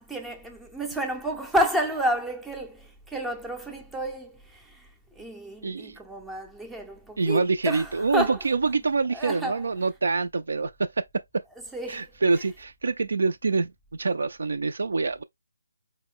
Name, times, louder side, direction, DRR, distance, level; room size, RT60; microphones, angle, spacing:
voice 1, 0.0-4.9 5.2-8.4 9.1-9.6 11.7-12.1, equal, 5° right, 0.5 m, -30 dB
voice 2, 5.6-6.0 7.2-11.0 11.3-11.4 11.9-15.2, right 4 dB, 65° right, 0.3 m, -26 dB
4.2 x 2.0 x 3.6 m
figure-of-eight pair, 155°, 0 cm